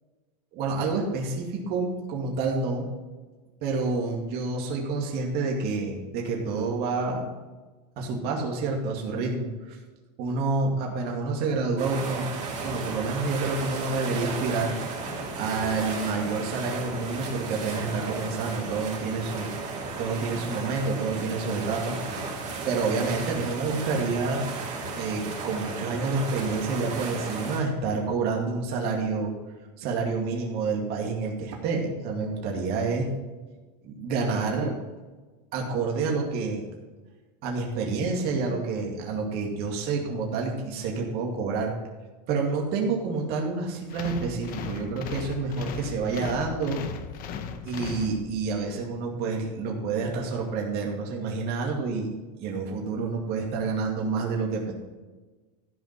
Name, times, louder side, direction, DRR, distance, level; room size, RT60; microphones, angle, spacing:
voice 1, 0.5-2.9 3.6-7.2 8.0-9.8 10.2-12.3 12.6-14.8 15.4-19.5 20.0-22.0 22.7-24.5 24.9-29.3 29.8-33.1 33.8-34.7 35.5-36.7 37.4-41.7 42.3-46.8 47.6-52.1 52.4-54.7, right 4 dB, 50° right, 0 dB, 2.2 m, -28 dB
sound 1, 11.8-27.6, right 3 dB, 35° right, 3.3 m, -34 dB
sound 2, 43.9-48.6, left 7 dB, 45° left, 0.9 m, -37 dB
13.0 x 5.2 x 5.7 m, 1.3 s
supercardioid pair, 120°, 21 cm